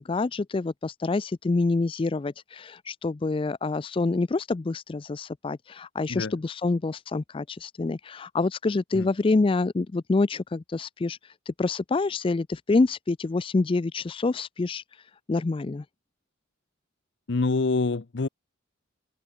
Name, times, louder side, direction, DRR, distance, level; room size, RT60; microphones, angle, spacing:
voice 1, 0.0-11.2 11.5-14.8 15.3-15.8, left 3 dB, 25° left, 0.4 m, -27 dB
voice 2, 17.3-18.3, left 3 dB, 60° left, 0.7 m, -26 dB
head